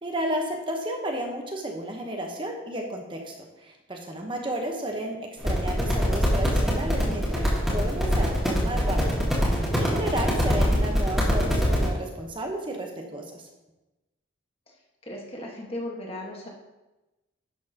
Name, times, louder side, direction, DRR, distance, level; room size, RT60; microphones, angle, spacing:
voice 1, 0.0-9.2 9.6-13.2, right 1 dB, 25° right, 1 dB, 1.0 m, -32 dB
sound 1, 5.4-11.9, equal, ahead, 2.0 m, -23 dB
voice 2, 15.0-16.5, left 1 dB, 30° left, -1 dB, 1.5 m, -37 dB
11.0 x 7.2 x 2.9 m, 1.0 s
head